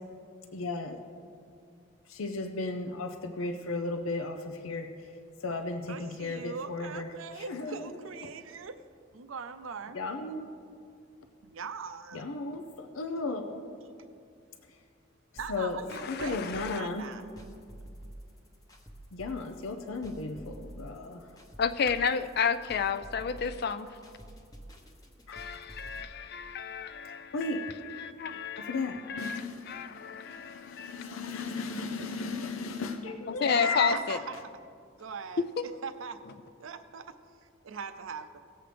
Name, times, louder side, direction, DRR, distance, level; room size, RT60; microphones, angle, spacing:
voice 1, 0.5-1.0 2.1-4.9 5.4-7.1 7.5-7.9 9.9-10.5 12.1-13.6 15.5-15.8 16.1-17.1 19.1-21.2 25.3-25.5 27.3-27.6 28.7-29.8 30.2-34.0, left 3 dB, 90° left, 0.6 m, -35 dB
voice 2, 5.9-8.8 9.1-10.0 11.4-12.3 15.4-17.2 33.6-34.5 35.0-35.4 35.8-36.2 36.6-37.2 37.6-38.4, right 5 dB, 80° right, 0.6 m, -41 dB
sound 1, 15.4-26.0, right 1 dB, 20° left, 0.9 m, -48 dB
voice 3, 15.9-16.8 21.6-23.9 25.3-31.1 33.3-34.2 35.4-35.6, left 6 dB, 50° left, 0.4 m, -32 dB
18.0 x 7.8 x 3.4 m
head